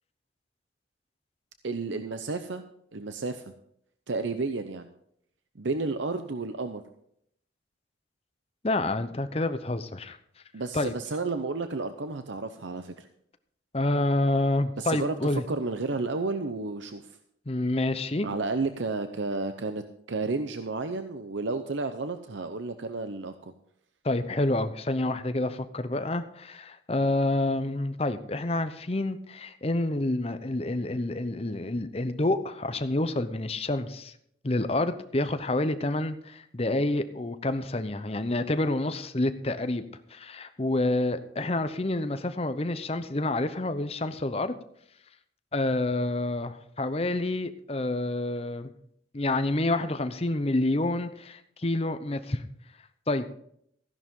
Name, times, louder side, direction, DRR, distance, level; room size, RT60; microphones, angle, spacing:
voice 1, 1.6-2.6 2.9-3.5 4.1-4.9 5.6-6.8 10.5-13.0 14.8-17.0 18.2-23.5, right 3 dB, 90° right, 9 dB, 0.8 m, -32 dB
voice 2, 8.6-10.2 10.7-10.9 13.7-15.4 17.5-18.3 24.0-34.1 34.4-39.9 40.1-44.5 45.5-48.7 49.1-52.4 53.1-53.3, left 2 dB, 35° left, 10 dB, 0.8 m, -28 dB
15.0 x 11.0 x 3.7 m, 0.69 s
head